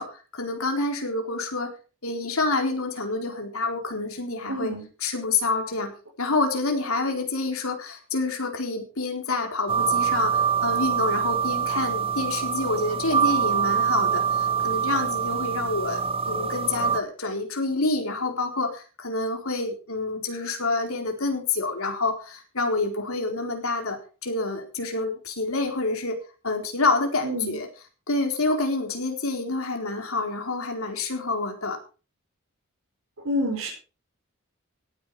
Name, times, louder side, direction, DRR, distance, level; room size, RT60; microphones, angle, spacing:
voice 1, 0.0-1.7 2.0-4.7 5.0-26.2 26.4-27.7 28.1-31.8, left 3 dB, 80° left, 3 dB, 4.0 m, -27 dB
voice 2, 4.5-4.9 27.2-27.6 33.2-33.7, equal, 75° right, -2 dB, 5.1 m, -28 dB
sound 1, 9.7-17.0, right 7 dB, 25° right, 0.8 m, -25 dB
17.5 x 10.0 x 4.9 m, 0.36 s
head